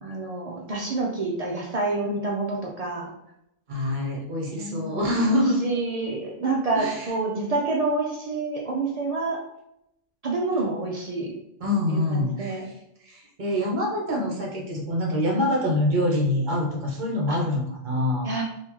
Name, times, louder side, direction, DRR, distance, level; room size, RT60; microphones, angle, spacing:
voice 1, 0.0-3.1 4.5-5.1 5.6-9.4 10.2-11.3 11.9-12.7 17.3-17.4 18.2-18.4, right 3 dB, 70° right, -2 dB, 0.3 m, -28 dB
voice 2, 3.7-5.6 6.7-7.1 11.6-12.7 13.0-18.4, left 1 dB, 45° right, -2 dB, 0.8 m, -25 dB
3.6 x 2.6 x 3.0 m, 0.82 s
omnidirectional pair, 1.3 m